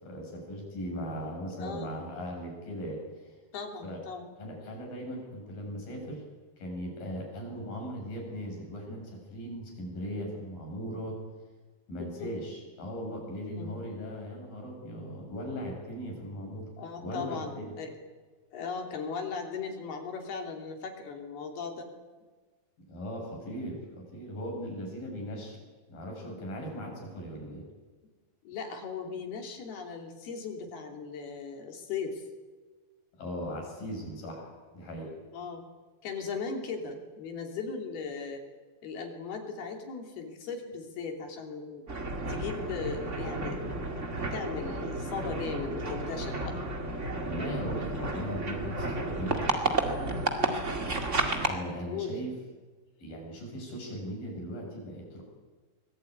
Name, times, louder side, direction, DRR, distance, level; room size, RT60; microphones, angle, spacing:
voice 1, 0.0-3.3 3.8-4.0 4.4-6.2 6.6-11.2 11.9-16.7 17.0-17.7 22.9-25.6 25.9-27.6 33.2-35.1 47.2-49.5 51.4-52.3 53.0-55.2, equal, 65° left, 0 dB, 8.9 m, -38 dB
voice 2, 1.5-1.9 3.5-4.3 12.2-12.3 13.6-13.7 16.8-17.9 18.5-21.9 28.4-32.2 35.3-35.6 36.0-38.4 38.8-41.8 42.3-44.0 44.3-46.6 50.3-50.8 51.8-52.1, left 5 dB, 90° left, 3 dB, 5.0 m, -38 dB
sound 1, 41.9-51.6, right 2 dB, 25° right, 1.8 m, -32 dB
24.0 x 20.0 x 9.4 m, 1.4 s
omnidirectional pair, 4.3 m